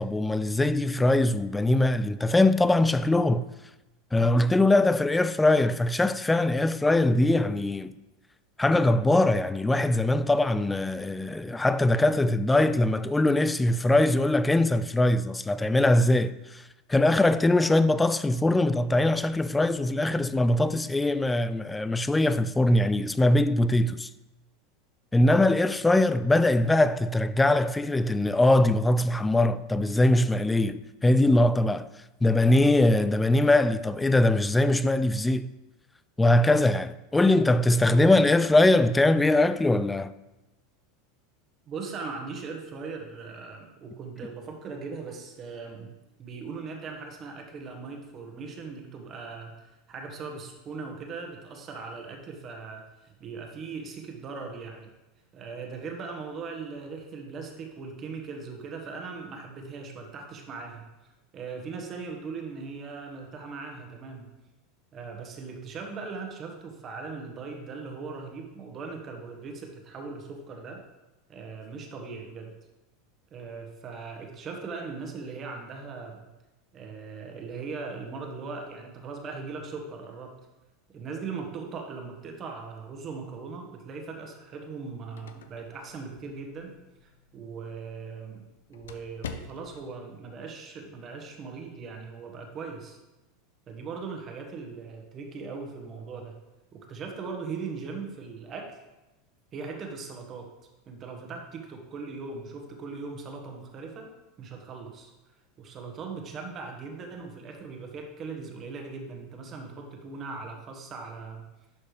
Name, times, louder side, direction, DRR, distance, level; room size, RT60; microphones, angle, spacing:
voice 1, 0.0-3.5 4.1-7.9 8.6-16.6 16.9-24.1 25.1-31.9 32.2-35.5 36.2-40.1, left 2 dB, 10° left, 0.3 m, -22 dB
voice 2, 41.7-49.5 49.9-54.9 55.3-60.9 61.3-64.3 64.9-70.8 71.3-72.5 73.3-76.2 76.7-80.3 80.9-93.0 93.7-96.3 96.7-98.8 99.5-100.5 100.9-104.1 104.4-105.1 105.6-111.4, right 4 dB, 35° right, 1.5 m, -39 dB
sound 1, 84.7-90.0, left 7 dB, 90° left, 0.5 m, -47 dB
11.5 x 4.3 x 3.4 m
hypercardioid pair, 110°, 0 cm